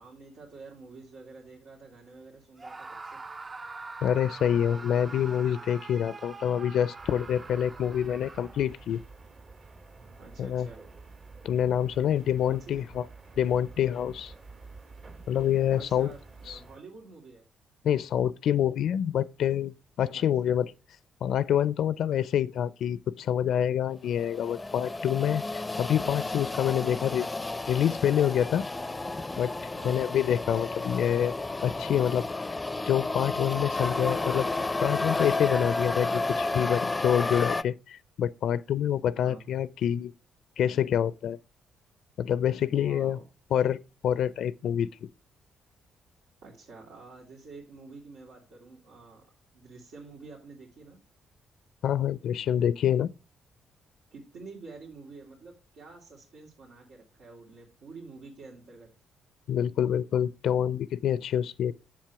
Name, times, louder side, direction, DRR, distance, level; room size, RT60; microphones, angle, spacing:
voice 1, 0.0-3.2 10.2-10.8 12.4-12.8 15.7-17.4 20.1-20.5 26.8-27.0 29.8-30.1 39.1-39.4 42.7-43.2 46.4-49.3 49.5-51.0 54.1-58.9, right 3 dB, 80° right, 2.6 m, -48 dB
Screaming, 2.6-8.8, right 3 dB, 30° right, 0.5 m, -44 dB
voice 2, 4.0-9.0 10.4-10.7 11.4-13.1 13.4-14.3 15.3-16.1 16.5-16.6 17.8-20.7 21.2-27.3 27.7-28.7 29.4-31.3 31.6-34.5 34.8-40.1 40.6-41.4 42.2-43.2 43.5-43.8 44.0-44.9 51.8-53.1 59.5-61.7, left 9 dB, 70° left, 0.4 m, -27 dB
sound 1, 7.0-16.8, right 3 dB, 55° right, 2.7 m, -50 dB
sound 2, 24.1-37.6, left 2 dB, 20° left, 0.5 m, -32 dB
7.5 x 7.3 x 4.7 m
cardioid pair, 90°, 0 cm